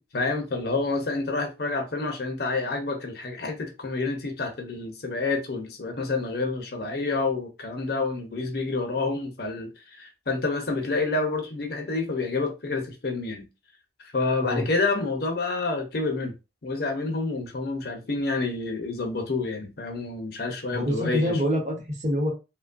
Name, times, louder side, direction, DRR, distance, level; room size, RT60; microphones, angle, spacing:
voice 1, 0.1-13.5 14.1-16.3 16.6-21.4, left 3 dB, 55° left, 0.6 m, -28 dB
voice 2, 20.7-22.3, equal, 40° right, 0.9 m, -26 dB
3.0 x 2.2 x 2.5 m
head